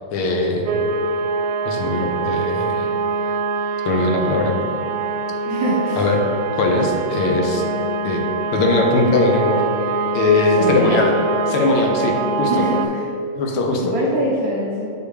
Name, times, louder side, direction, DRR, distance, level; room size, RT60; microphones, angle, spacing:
voice 1, 0.1-0.9 1.6-2.9 3.8-4.6 6.0-6.2 6.5-7.6 8.0-8.2 8.5-9.6 10.1-11.1 11.5-12.6 13.4-13.9, left 2 dB, 90° left, 2 dB, 1.7 m, -20 dB
sound 1, 0.7-12.9, right 4 dB, 90° right, 1.5 m, -24 dB
voice 2, 5.4-6.1 10.6-11.0 12.5-13.0 13.8-14.9, equal, 55° right, -4 dB, 1.1 m, -23 dB
5.2 x 4.5 x 4.7 m, 2.8 s
omnidirectional pair, 2.3 m